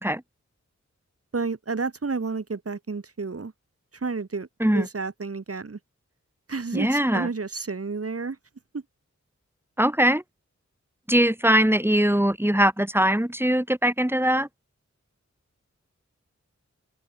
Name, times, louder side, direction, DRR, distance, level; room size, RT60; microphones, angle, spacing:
voice 1, 1.3-3.5 4.0-4.5 4.7-5.8 6.5-8.4, right 4 dB, 55° right, 1.7 m, -30 dB
voice 2, 6.7-7.3 9.8-10.2 11.1-14.5, right 1 dB, 10° right, 3.0 m, -21 dB
open air
wide cardioid pair, 60°, 29 cm